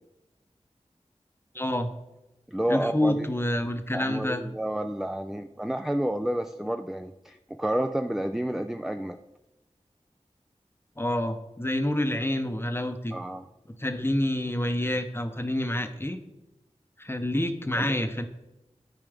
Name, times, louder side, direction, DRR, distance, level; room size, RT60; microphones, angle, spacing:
voice 1, 1.5-1.9 2.7-4.4 11.0-13.1 13.8-16.2 17.0-18.3, left 1 dB, 20° left, 8 dB, 0.8 m, -28 dB
voice 2, 2.5-3.3 3.9-9.2 13.1-13.5 17.8-18.0, right 1 dB, 5° right, 7 dB, 0.3 m, -30 dB
12.5 x 4.8 x 3.4 m, 0.96 s
wide cardioid pair, 55°, 12 cm